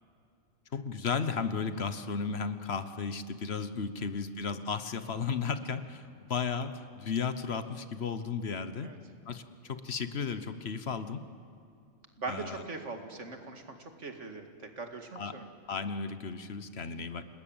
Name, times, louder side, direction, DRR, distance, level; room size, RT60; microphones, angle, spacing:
voice 1, 0.7-6.0 6.3-8.9 9.3-11.2 12.3-12.6 15.1-15.4 15.7-17.2, left 5 dB, 60° left, 11 dB, 1.3 m, -34 dB
voice 2, 12.2-15.5, right 3 dB, 80° right, 5 dB, 2.4 m, -41 dB
29.0 x 20.0 x 8.9 m, 2.4 s
omnidirectional pair, 1.2 m